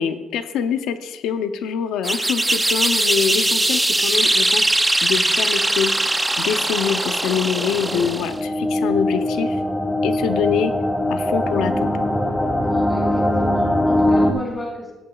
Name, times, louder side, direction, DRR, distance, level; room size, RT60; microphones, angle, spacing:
voice 1, 0.0-4.6 5.0-5.9 6.4-9.6 10.0-10.7 11.1-11.9, left 7 dB, 90° left, 10 dB, 0.6 m, -24 dB
sound 1, 2.0-8.4, right 1 dB, 10° right, 0.6 m, -20 dB
sound 2, 7.6-14.3, left 1 dB, 10° left, 1.0 m, -21 dB
voice 2, 12.7-14.9, left 2 dB, 25° left, -6 dB, 2.7 m, -32 dB
17.0 x 8.8 x 2.4 m, 1.1 s
cardioid pair, 90°, 0 cm